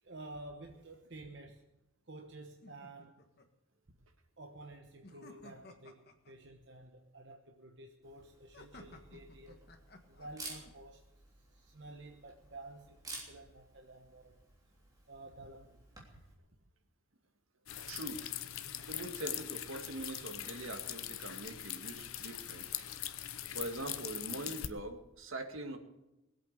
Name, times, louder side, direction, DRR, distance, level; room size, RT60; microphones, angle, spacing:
voice 1, 0.0-1.7 2.0-3.3 4.4-9.7 10.1-11.0 11.3-14.4 15.1-15.8 17.7-17.9, right 2 dB, 55° right, 3 dB, 1.2 m, -51 dB
sound 1, 2.6-3.5 5.0-6.3 8.5-10.7, left 2 dB, 50° left, 1.7 m, -55 dB
Camera, 8.0-16.3, right 2 dB, 15° right, 3.2 m, -53 dB
sound 2, 17.7-24.7, left 11 dB, 90° left, 0.9 m, -42 dB
voice 2, 17.9-18.2 18.9-22.8 23.5-25.8, right 2 dB, 75° right, 6 dB, 2.0 m, -43 dB
21.0 x 8.5 x 6.6 m, 0.96 s
head